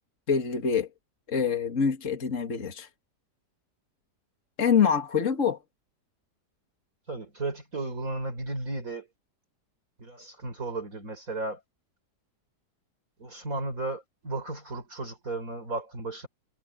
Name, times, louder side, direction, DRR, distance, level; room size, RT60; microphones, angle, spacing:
voice 1, 0.3-0.9 1.3-2.9 4.6-5.6, left 6 dB, 45° left, 2.4 m, -25 dB
voice 2, 7.1-9.1 10.0-11.6 13.2-16.3, right 2 dB, 50° right, 5.1 m, -34 dB
omnidirectional pair, 1.8 m